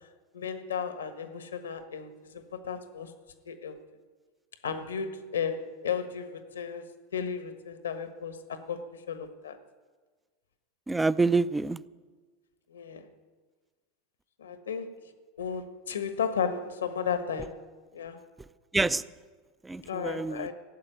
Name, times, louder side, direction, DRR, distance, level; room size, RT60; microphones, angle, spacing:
voice 1, 0.3-3.1 3.5-3.8 4.6-9.6 12.7-13.1 14.4-14.9 15.4-17.6 17.9-18.2 19.8-20.5, left 7 dB, 85° left, 9 dB, 1.3 m, -34 dB
voice 2, 10.9-11.8 18.7-19.0 19.6-20.5, right 3 dB, 10° right, 17 dB, 0.5 m, -27 dB
15.5 x 7.7 x 9.2 m, 1.4 s
hypercardioid pair, 90°, 0 cm